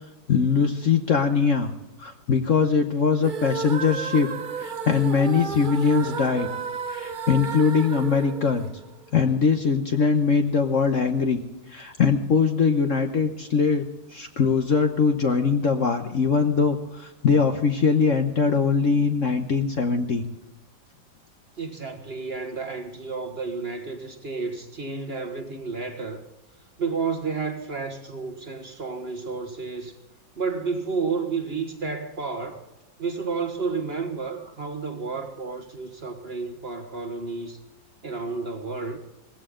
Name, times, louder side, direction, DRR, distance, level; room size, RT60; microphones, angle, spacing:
voice 1, 0.3-1.7 2.0-4.3 4.6-6.5 6.9-8.7 9.1-11.4 11.7-13.8 14.1-20.2, left 5 dB, 50° left, 1.1 m, -22 dB
sound 1, 3.2-9.3, right 5 dB, 55° right, 0.5 m, -33 dB
voice 2, 21.6-26.2 26.8-30.0 30.4-32.6 33.0-37.6 38.0-39.0, right 4 dB, 35° right, 1.4 m, -31 dB
19.0 x 15.5 x 3.8 m
omnidirectional pair, 2.0 m